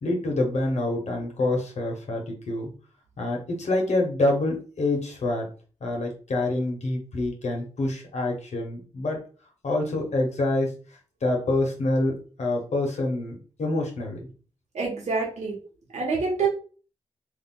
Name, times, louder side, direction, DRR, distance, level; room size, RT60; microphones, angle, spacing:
voice 1, 0.0-2.7 3.2-5.5 5.8-9.2 9.6-10.7 11.2-14.3, left 2 dB, 75° left, 0 dB, 1.3 m, -26 dB
voice 2, 14.7-15.5 15.9-16.5, right 4 dB, 75° right, -3 dB, 1.5 m, -26 dB
3.3 x 2.7 x 3.9 m, 0.38 s
cardioid pair, 65°, 12 cm